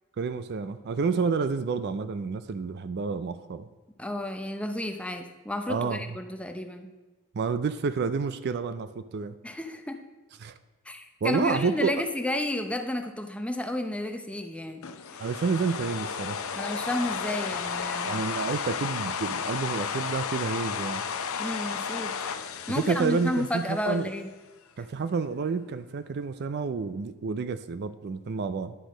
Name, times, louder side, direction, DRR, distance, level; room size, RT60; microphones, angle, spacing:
voice 1, 0.2-3.7 5.7-6.0 7.3-9.4 10.4-10.5 11.2-12.0 15.2-16.4 18.0-21.0 22.8-24.1 24.8-28.8, right 5 dB, 50° right, 13 dB, 0.4 m, -29 dB
voice 2, 4.0-6.9 9.4-10.0 10.9-14.8 16.5-18.2 21.4-22.1 22.7-24.3, left 1 dB, 5° left, 5 dB, 0.6 m, -31 dB
sound 1, 14.8-24.0, left 6 dB, 75° left, 0.6 m, -33 dB
10.0 x 6.2 x 5.0 m, 1.3 s
head